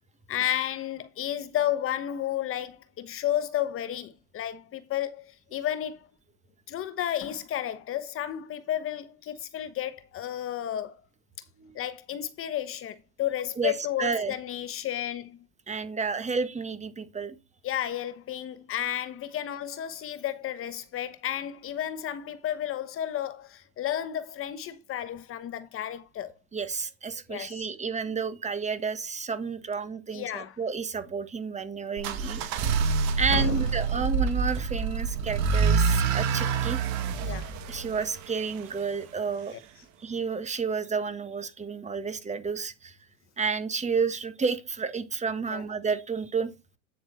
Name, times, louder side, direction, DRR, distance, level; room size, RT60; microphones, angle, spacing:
voice 1, 0.3-6.1 6.7-11.0 11.7-15.4 17.6-26.3 27.3-27.7 30.1-30.6 33.3-33.7 37.2-37.5 39.5-39.6 45.5-45.6, left 11 dB, 40° left, 1.1 m, -32 dB
voice 2, 14.0-14.3 15.7-17.4 26.5-32.4 33.2-36.8 37.7-39.5 40.0-42.9 43.4-46.5, right 5 dB, 20° right, 1.6 m, -31 dB
sound 1, 32.0-38.9, right 5 dB, 55° right, 2.2 m, -27 dB
9.0 x 6.8 x 4.2 m
hypercardioid pair, 100°, 34 cm